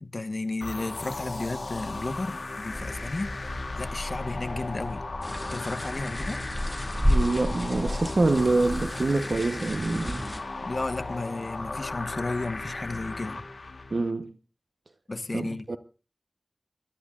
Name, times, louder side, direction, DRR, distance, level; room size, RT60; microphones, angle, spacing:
voice 1, 0.0-5.0 5.5-6.4 10.6-13.4 15.1-15.7, left 2 dB, 65° left, 1.2 m, -33 dB
sound 1, 0.6-14.1, left 3 dB, 80° left, 1.5 m, -36 dB
sound 2, 2.7-8.1, left 1 dB, 35° left, 1.1 m, -42 dB
sound 3, 5.2-10.4, equal, ahead, 2.2 m, -30 dB
voice 2, 7.1-10.2 13.9-14.3 15.3-15.8, right 3 dB, 85° right, 0.9 m, -26 dB
25.5 x 13.0 x 2.4 m
wide cardioid pair, 45°, 0 cm